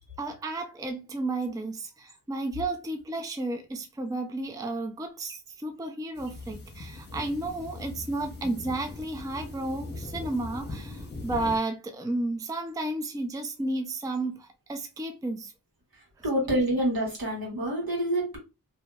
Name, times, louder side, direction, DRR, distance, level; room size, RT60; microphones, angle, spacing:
voice 1, 0.2-15.5 16.4-16.5, right 2 dB, 10° right, 0.4 m, -32 dB
sound 1, 6.2-11.6, left 2 dB, 30° left, 0.8 m, -40 dB
voice 2, 16.2-18.4, right 1 dB, 75° right, 1.5 m, -27 dB
2.8 x 2.6 x 2.3 m
wide cardioid pair, 70°, 36 cm